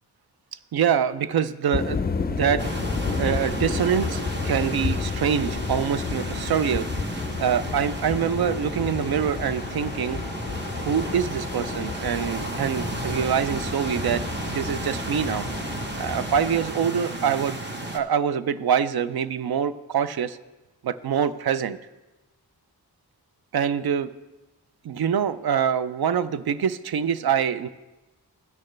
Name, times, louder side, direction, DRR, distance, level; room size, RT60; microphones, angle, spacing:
voice 1, 0.7-2.6 3.2-6.9 7.4-10.2 10.9-15.5 16.0-17.6 17.9-20.4 20.8-21.8 23.5-24.1 24.8-27.7, right 8 dB, 70° right, 14 dB, 0.5 m, -25 dB
sound 1, 1.7-16.7, left 5 dB, 25° left, 0.4 m, -31 dB
sound 2, 2.6-18.0, right 2 dB, 30° right, 1.1 m, -33 dB
16.0 x 6.5 x 3.2 m, 1.1 s
cardioid pair, 55°, 39 cm